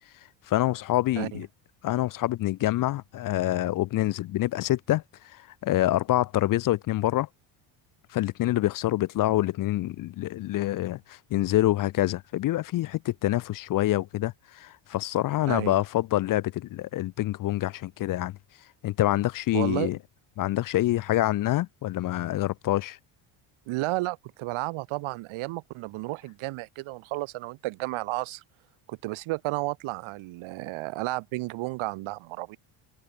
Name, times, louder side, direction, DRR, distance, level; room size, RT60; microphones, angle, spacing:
voice 1, 0.5-1.5 1.8-7.3 8.1-18.4 18.8-20.0 20.4-23.0, left 15 dB, 45° left, 0.6 m, -26 dB
voice 2, 19.5-19.9 23.7-28.4 28.9-32.6, right 20 dB, 75° right, 2.8 m, -32 dB
cardioid pair, 140°, 49 cm